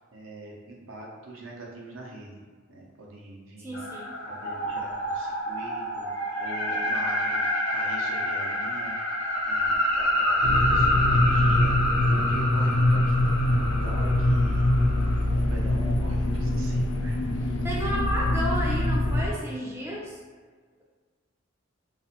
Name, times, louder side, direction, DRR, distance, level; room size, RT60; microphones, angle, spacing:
voice 1, 0.1-2.3 2.7-3.8 4.3-7.4 7.7-9.1 9.4-14.7 15.2-17.6 18.0-18.1, right 2 dB, 75° right, -3 dB, 0.6 m, -43 dB
voice 2, 3.6-4.1 17.6-20.2, equal, 15° right, -4 dB, 0.3 m, -32 dB
sound 1, 3.7-15.2, left 1 dB, 60° left, 0.7 m, -28 dB
sound 2, 10.4-19.3, left 1 dB, 80° left, 0.3 m, -24 dB
2.4 x 2.3 x 2.7 m, 1.5 s
head